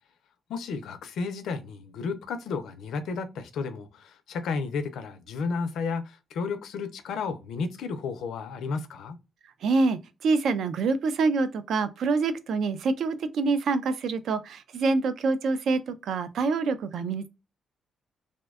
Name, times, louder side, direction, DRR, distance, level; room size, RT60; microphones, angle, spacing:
voice 1, 0.5-9.2, left 4 dB, 90° left, 0.4 m, -32 dB
voice 2, 9.6-17.3, right 4 dB, 70° right, 0.3 m, -26 dB
2.6 x 2.1 x 2.2 m
cardioid pair, 140°, 0 cm